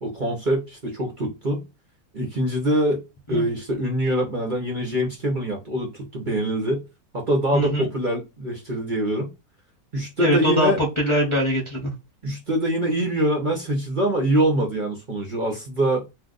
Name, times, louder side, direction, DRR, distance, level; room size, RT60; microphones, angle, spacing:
voice 1, 0.0-1.6 2.1-3.0 3.3-6.8 7.1-9.3 9.9-10.8 12.2-16.0, right 1 dB, 40° right, 0.9 m, -24 dB
voice 2, 7.5-7.9 10.2-11.9, equal, 25° left, 0.7 m, -22 dB
2.7 x 2.4 x 3.7 m
omnidirectional pair, 1.6 m